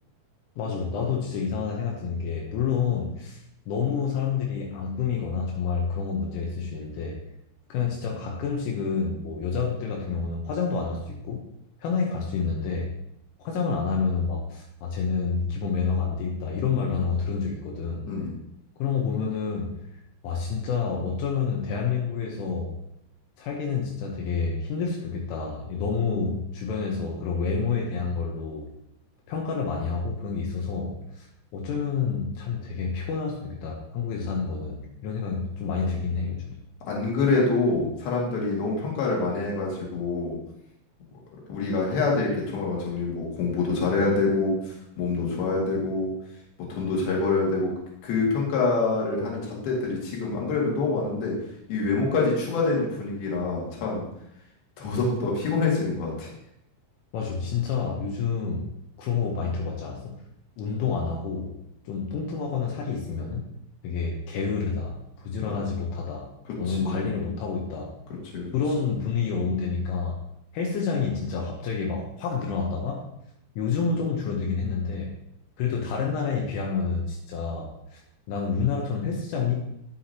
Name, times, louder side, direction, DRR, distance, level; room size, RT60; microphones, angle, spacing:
voice 1, 0.6-7.2 7.7-11.4 11.8-12.9 13.4-18.1 18.8-19.7 20.2-22.8 23.4-28.7 29.3-31.3 31.5-36.5 57.1-58.7 59.0-60.2 60.6-61.6 61.9-63.5 63.8-66.3 66.6-67.9 68.5-70.2 70.5-73.1 73.6-75.2 75.6-78.0 78.3-79.6, left 5 dB, 80° left, -1 dB, 3.5 m, -28 dB
voice 2, 36.8-40.4 41.5-46.1 46.7-47.7 48.0-51.3 51.7-54.1 54.8-56.3 65.4-65.6 66.7-67.1 68.3-68.5, left 3 dB, 60° left, -3 dB, 3.4 m, -26 dB
9.8 x 7.2 x 2.9 m, 0.79 s
omnidirectional pair, 5.7 m